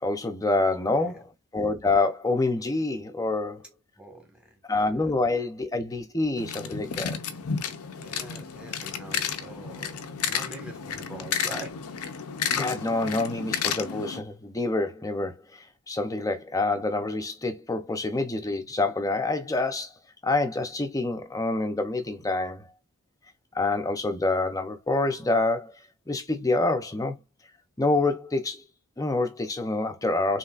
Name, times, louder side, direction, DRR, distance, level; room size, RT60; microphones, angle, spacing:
voice 1, 0.0-3.6 4.7-7.2 12.5-19.9 20.2-22.7 23.5-25.8 26.1-27.2 27.8-28.6 29.0-30.4, left 2 dB, 15° left, 0.6 m, -27 dB
voice 2, 0.6-1.1 4.0-4.6 8.0-9.9 10.2-11.7, right 1 dB, 5° right, 1.5 m, -43 dB
sound 1, 6.4-14.2, left 7 dB, 80° left, 0.6 m, -32 dB
5.5 x 3.2 x 2.4 m
head